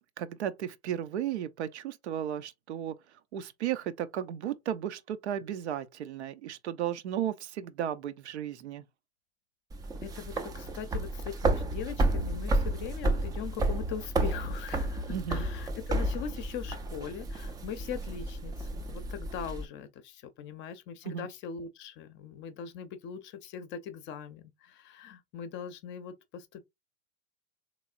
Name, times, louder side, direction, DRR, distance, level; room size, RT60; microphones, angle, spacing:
voice 1, 0.2-3.0 3.3-8.8 15.1-15.5 21.0-21.3, right 10 dB, 85° right, 0.6 m, -34 dB
sound 1, 9.7-19.6, right 2 dB, 10° right, 0.3 m, -31 dB
voice 2, 10.0-26.6, left 7 dB, 35° left, 0.6 m, -41 dB
3.5 x 3.1 x 2.4 m
hypercardioid pair, 110°, 33 cm